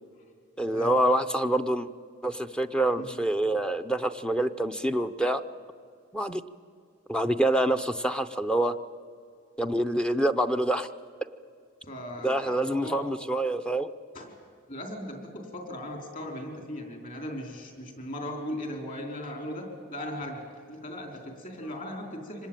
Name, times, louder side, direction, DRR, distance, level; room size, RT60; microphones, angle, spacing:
voice 1, 0.6-1.9 2.2-5.4 6.1-6.4 7.1-8.8 9.6-10.9 12.2-13.9, right 1 dB, 5° left, 9 dB, 0.5 m, -26 dB
voice 2, 11.8-13.1 14.1-14.3 14.7-22.5, left 1 dB, 40° left, 3 dB, 4.4 m, -38 dB
25.0 x 20.0 x 9.1 m, 2.2 s
head